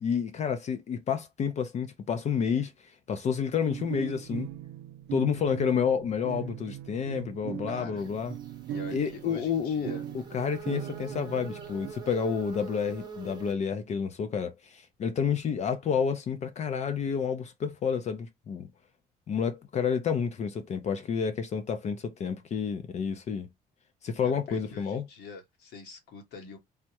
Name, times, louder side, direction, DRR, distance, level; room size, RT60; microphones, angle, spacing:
voice 1, 0.0-2.7 3.1-4.5 5.1-8.3 8.9-10.0 10.3-18.7 19.3-23.5 24.0-25.0, left 7 dB, 40° left, 0.5 m, -29 dB
sound 1, 3.7-11.9, right 11 dB, 75° right, 0.4 m, -39 dB
voice 2, 7.7-8.0 8.7-10.0 24.2-26.6, left 4 dB, 75° left, 1.0 m, -44 dB
sound 2, 8.0-13.5, right 6 dB, 25° right, 0.8 m, -45 dB
3.5 x 2.0 x 2.8 m
cardioid pair, 110°, 17 cm